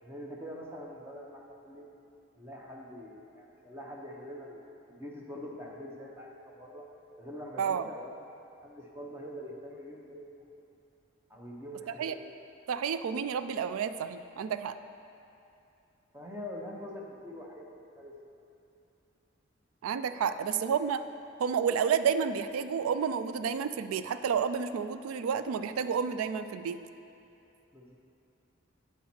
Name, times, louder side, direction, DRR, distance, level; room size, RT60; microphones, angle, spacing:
voice 1, 0.0-1.9 2.3-4.6 4.9-6.9 7.2-8.1 8.6-10.3 11.3-12.3 16.1-17.7 18.0-18.4 20.1-20.2 27.7-27.9, equal, 10° right, -2 dB, 0.7 m, -44 dB
voice 2, 12.7-14.8 19.8-21.0 21.4-26.8, right 7 dB, 85° right, 11 dB, 0.3 m, -30 dB
8.3 x 5.6 x 4.3 m, 2.7 s
head